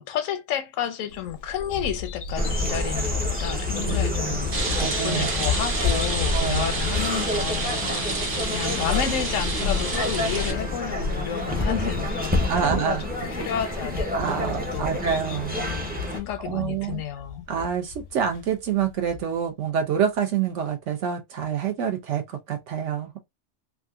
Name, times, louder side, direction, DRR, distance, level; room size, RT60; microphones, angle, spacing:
voice 1, 0.0-8.1 8.5-14.9 15.5-17.5, left 9 dB, 85° left, 1.0 m, -31 dB
Bird vocalization bird call bird song, 1.1-19.2, left 6 dB, 60° left, 0.7 m, -34 dB
sound 1, 2.3-16.2, left 1 dB, 10° right, 0.4 m, -29 dB
voice 2, 3.9-4.3 4.8-5.3 6.3-6.7 12.5-13.1 14.1-15.6 16.4-17.0 17.5-23.2, right 8 dB, 70° right, 0.9 m, -27 dB
Rain, 4.5-10.5, right 2 dB, 45° right, 1.0 m, -29 dB
3.6 x 2.4 x 2.3 m
omnidirectional pair, 1.3 m